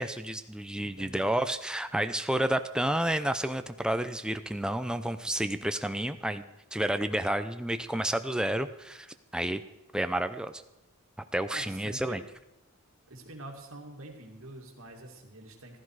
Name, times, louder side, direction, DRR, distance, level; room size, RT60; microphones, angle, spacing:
voice 1, 0.0-6.4 6.7-9.1 9.3-9.6 9.9-10.6 11.3-12.2, right 1 dB, 5° right, 9 dB, 0.5 m, -30 dB
voice 2, 0.9-1.4 11.5-12.2 13.1-15.8, right 2 dB, 70° right, 2 dB, 2.5 m, -46 dB
15.0 x 13.5 x 4.9 m, 0.88 s
head